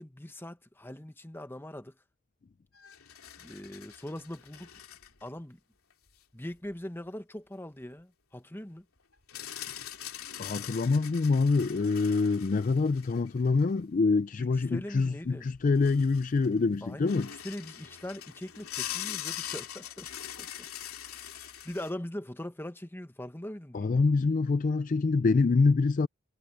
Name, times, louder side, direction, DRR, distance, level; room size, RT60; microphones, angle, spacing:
voice 1, 0.0-2.0 3.4-4.7 5.2-5.6 6.3-8.9 14.4-15.5 16.8-20.7 21.1-21.4 21.6-24.0, left 1 dB, 10° left, 1.0 m, -41 dB
sound 1, 2.7-5.3 5.9-6.0 9.3-13.7 15.2-15.3 15.5-16.6 17.0-21.9, left 11 dB, 70° left, 2.9 m, -42 dB
voice 2, 10.4-17.3 23.7-26.1, left 4 dB, 35° left, 0.3 m, -25 dB
head